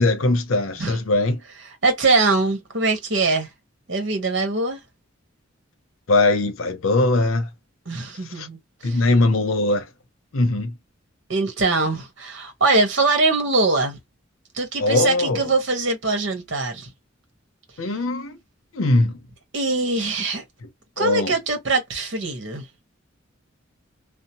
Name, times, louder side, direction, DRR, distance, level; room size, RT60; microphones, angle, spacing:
voice 1, 0.0-1.4 6.1-7.5 8.2-8.5 8.8-9.9 10.3-10.7 14.8-15.5 17.8-18.4 18.7-19.2 21.0-21.4, left 2 dB, 90° left, 0.7 m, -20 dB
voice 2, 1.8-3.5 3.9-4.8 7.9-9.0 11.3-14.0 14.5-16.9 19.5-20.4 21.0-22.7, right 3 dB, 60° right, 1.1 m, -22 dB
2.7 x 2.0 x 2.8 m
head